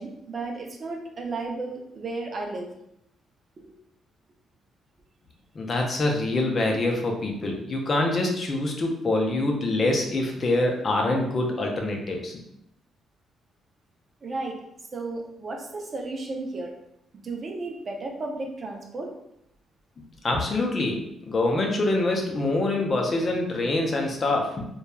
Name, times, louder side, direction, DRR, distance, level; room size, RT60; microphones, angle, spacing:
voice 1, 0.0-2.7 3.6-3.7 14.2-14.6 14.9-16.7 17.2-19.1, right 3 dB, 45° right, 1 dB, 0.5 m, -33 dB
voice 2, 5.6-12.4 20.2-24.6, left 2 dB, 40° left, 1 dB, 0.5 m, -25 dB
2.9 x 2.2 x 2.3 m, 0.79 s
cardioid pair, 90°, 0 cm